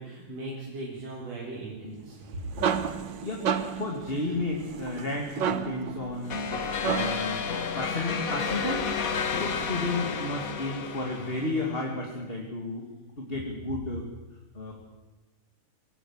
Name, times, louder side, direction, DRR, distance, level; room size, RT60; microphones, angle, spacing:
voice 1, 0.0-2.2 4.3-4.5, right 2 dB, 55° right, -5 dB, 5.1 m, -39 dB
sound 1, 2.1-7.4, right 7 dB, 70° right, 1.0 m, -32 dB
voice 2, 3.7-7.4 7.8-8.9 9.3-12.9 13.2-14.1 14.5-14.7, left 2 dB, 20° left, 0 dB, 2.5 m, -32 dB
sound 2, 6.3-11.8, left 5 dB, 70° left, 0.8 m, -31 dB
24.0 x 18.5 x 6.5 m, 1.2 s
omnidirectional pair, 3.6 m